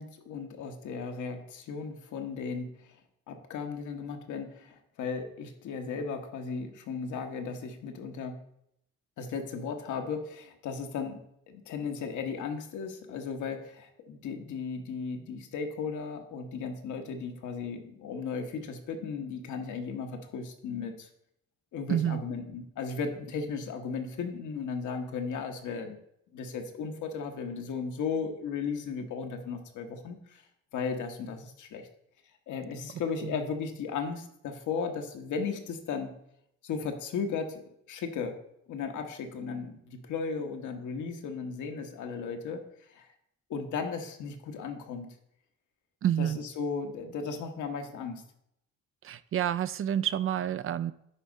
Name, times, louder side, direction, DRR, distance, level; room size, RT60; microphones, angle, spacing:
voice 1, 0.0-3.0 3.3-8.4 9.2-11.2 11.5-21.1 21.7-26.0 26.3-30.4 30.7-31.9 32.5-36.1 36.6-37.6 37.9-38.4 38.7-43.1 43.5-45.1 46.2-48.2, left 5 dB, 75° left, 5 dB, 1.2 m, -36 dB
voice 2, 21.9-22.2 33.2-33.4 46.0-46.4 49.0-50.9, right 10 dB, 45° right, 14 dB, 0.4 m, -29 dB
10.0 x 3.6 x 5.2 m, 0.76 s
cardioid pair, 90°, 30 cm